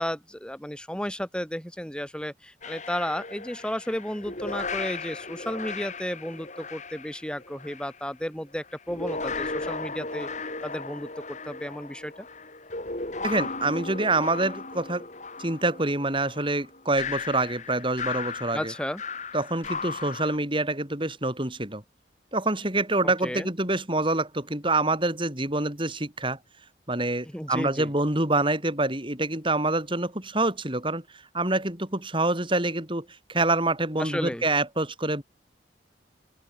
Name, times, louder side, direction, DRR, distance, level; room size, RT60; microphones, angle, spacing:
voice 1, 0.0-10.3 10.6-12.3 18.5-19.0 23.0-23.5 27.3-27.9 34.0-34.4, equal, 5° left, 7.8 m, -33 dB
sound 1, 2.6-8.0 8.7-20.4, left 4 dB, 40° left, 6.3 m, -36 dB
voice 2, 13.2-15.1 15.4-18.7 19.3-21.8 22.3-26.4 26.9-31.0 31.3-35.2, right 2 dB, 30° right, 6.1 m, -26 dB
open air
head